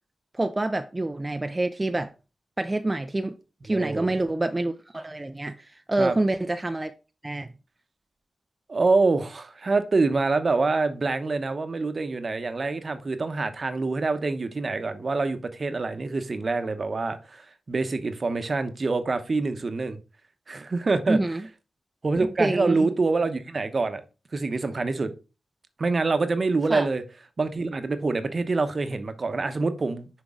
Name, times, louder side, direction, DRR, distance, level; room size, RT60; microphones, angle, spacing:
voice 1, 0.3-2.1 2.6-3.4 3.6-6.9 7.2-7.5 21.1-21.5 22.4-22.9 26.7-26.9, right 2 dB, 25° right, 0.5 m, -27 dB
voice 2, 3.7-4.1 6.0-6.1 8.7-20.0 20.5-21.2 22.0-24.0 24.3-25.1 25.8-27.0 27.4-30.1, right 3 dB, 50° right, 0.9 m, -26 dB
6.2 x 4.7 x 3.7 m
cardioid pair, 55°, 0 cm